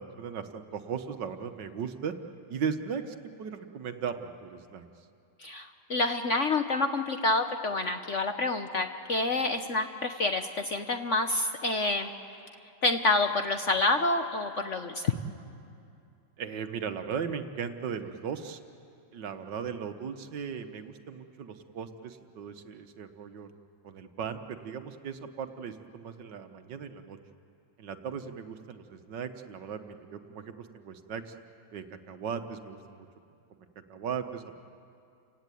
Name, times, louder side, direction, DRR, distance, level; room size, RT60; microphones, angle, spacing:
voice 1, 0.0-2.1 2.5-4.8 16.4-18.6 19.1-23.5 23.8-27.2 27.8-31.3 31.7-33.1 33.9-34.6, right 6 dB, 65° right, 8 dB, 1.7 m, -37 dB
voice 2, 5.4-12.1 12.8-15.1, left 2 dB, 45° left, 6 dB, 1.0 m, -28 dB
30.0 x 16.5 x 9.2 m, 2.5 s
omnidirectional pair, 2.2 m